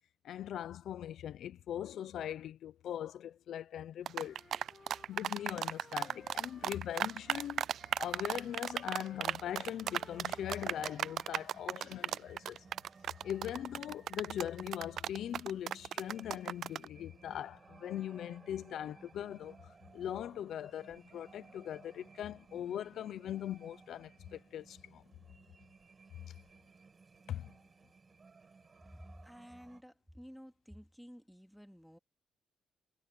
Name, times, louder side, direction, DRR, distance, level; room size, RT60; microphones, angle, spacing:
voice 1, 0.2-4.4 5.1-7.7 8.0-12.7 13.2-25.0 26.3-26.4 27.3-27.5, left 10 dB, 70° left, 0.8 m, -41 dB
sound 1, 4.1-16.9, right 9 dB, 65° right, 0.4 m, -36 dB
Wind instrument woodwind instrument, 4.2-11.3, left 4 dB, 35° left, 6.9 m, -60 dB
sound 2, 10.1-29.8, right 4 dB, 35° right, 6.4 m, -59 dB
voice 2, 28.9-32.0, equal, ahead, 2.7 m, -53 dB
cardioid pair, 90°, 0 cm